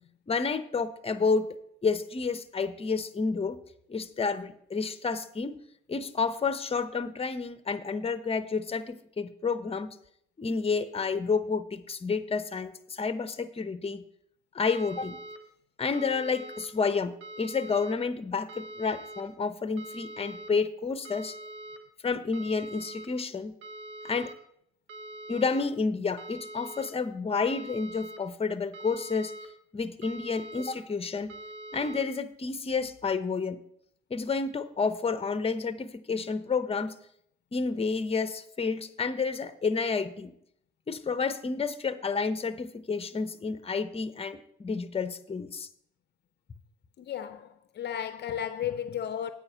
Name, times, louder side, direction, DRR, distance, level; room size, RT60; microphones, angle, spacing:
voice 1, 0.3-1.5 1.8-3.6 3.9-5.6 5.9-9.9 10.4-14.0 14.5-15.2 15.8-21.3 22.0-23.5 24.0-24.3 25.3-29.3 29.7-31.3 31.7-33.6 34.1-36.9 37.5-40.3 40.9-45.7, left 4 dB, 30° left, 0.8 m, -30 dB
sound 1, 14.6-15.4 15.9-16.7 17.2-17.9 18.5-19.2 19.8-20.5 21.0-21.8 22.3-23.1 23.6-24.3 24.9-25.6 26.2-26.9 27.4-28.2 28.7-29.5 30.0-30.7 31.3-32.0, right 1 dB, 70° right, 1.6 m, -43 dB
voice 2, 47.0-49.3, left 9 dB, 55° left, 0.6 m, -34 dB
8.8 x 5.0 x 6.8 m
supercardioid pair, 65°, 21 cm